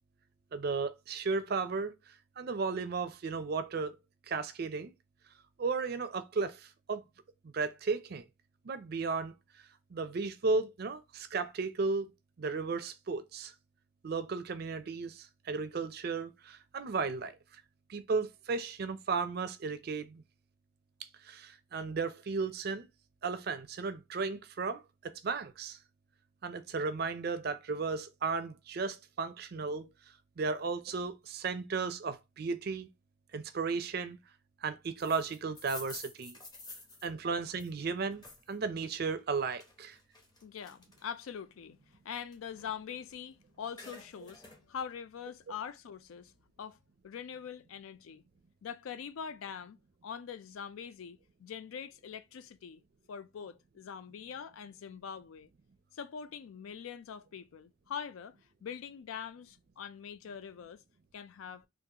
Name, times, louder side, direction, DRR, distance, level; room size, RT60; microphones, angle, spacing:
voice 1, 0.5-1.9 2.4-4.0 4.3-4.9 5.6-7.0 7.5-8.3 8.6-9.3 9.9-12.1 12.4-13.5 14.0-17.3 17.9-20.2 21.3-22.9 23.2-25.8 26.4-29.9 30.4-32.9 33.3-34.2 34.6-36.4 37.0-38.2 38.5-40.0, right 4 dB, 50° right, 0.4 m, -34 dB
sound 1, 35.0-38.5 38.9-41.3 41.7-43.3 43.5-44.6, left 2 dB, 20° left, 0.7 m, -50 dB
voice 2, 40.4-46.3 46.6-46.8 47.0-48.2 48.6-49.8 50.0-52.8 53.1-55.5 55.9-60.8 61.1-61.7, left 7 dB, 90° left, 0.4 m, -43 dB
3.8 x 2.4 x 2.8 m
head